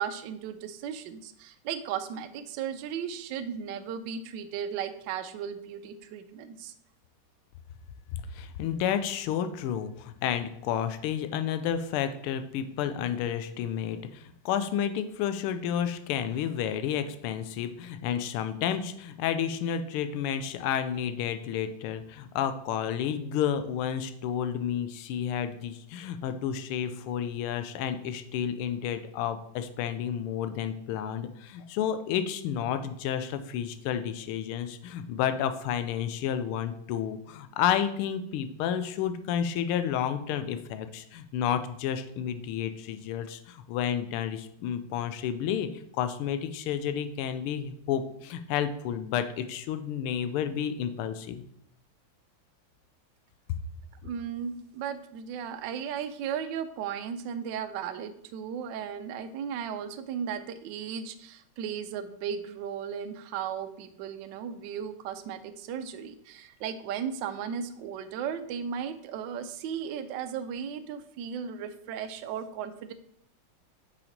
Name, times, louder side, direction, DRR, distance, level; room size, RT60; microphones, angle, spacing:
voice 1, 0.0-6.7 54.0-72.9, right 8 dB, 75° right, 9 dB, 1.1 m, -36 dB
voice 2, 8.1-51.4, left 9 dB, 90° left, 10 dB, 1.5 m, -31 dB
5.7 x 5.1 x 3.9 m, 0.69 s
omnidirectional pair, 2.3 m